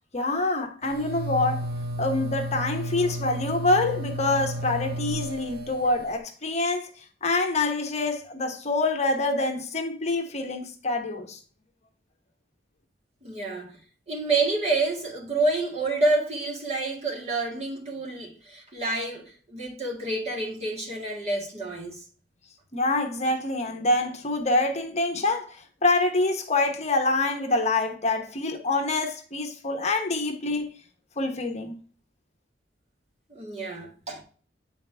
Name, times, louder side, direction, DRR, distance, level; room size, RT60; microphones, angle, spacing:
voice 1, 0.1-1.7 2.0-6.9 7.2-11.4 22.7-30.7 31.2-31.8, left 2 dB, 40° left, 1.0 m, -26 dB
sound 1, 0.8-6.2, equal, 60° right, 0.9 m, -33 dB
voice 2, 13.2-13.7 14.1-22.0 33.3-34.2, right 2 dB, 40° right, 1.8 m, -28 dB
8.6 x 4.1 x 3.4 m
head